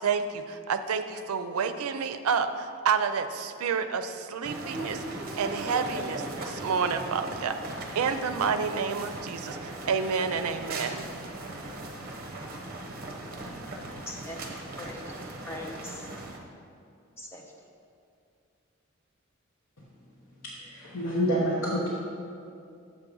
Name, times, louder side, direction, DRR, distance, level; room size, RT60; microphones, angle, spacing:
voice 1, 0.0-5.0 5.4-7.6 8.0-11.1, right 6 dB, 85° right, 9 dB, 0.4 m, -29 dB
sound 1, 4.4-16.4, right 2 dB, 40° right, 0.8 m, -38 dB
voice 2, 14.1-15.0 15.5-16.1 17.2-17.6, left 1 dB, 10° left, 0 dB, 0.5 m, -41 dB
voice 3, 20.7-21.9, equal, 70° left, -7 dB, 1.0 m, -27 dB
7.3 x 4.7 x 5.3 m, 2.4 s
head